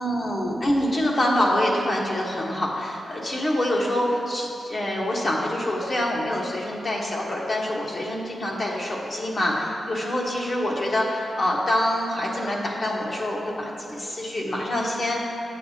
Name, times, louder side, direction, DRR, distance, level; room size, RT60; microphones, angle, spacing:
voice 1, 0.0-15.4, left 1 dB, 50° left, -3 dB, 1.4 m, -25 dB
8.9 x 7.9 x 2.9 m, 2.6 s
cardioid pair, 65°, 0 cm